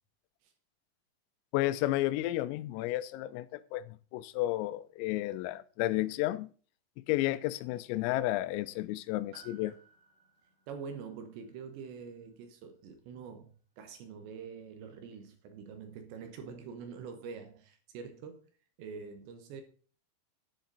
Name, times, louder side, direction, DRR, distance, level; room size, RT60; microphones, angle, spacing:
voice 1, 1.5-6.5 7.1-9.8, left 16 dB, 90° left, 3.3 m, -32 dB
Piano, 9.3-13.9 14.2-14.3, right 4 dB, 45° right, 5.5 m, -62 dB
voice 2, 10.7-18.5 18.8-19.6, right 6 dB, 70° right, 3.1 m, -45 dB
10.5 x 10.0 x 4.0 m
omnidirectional pair, 5.9 m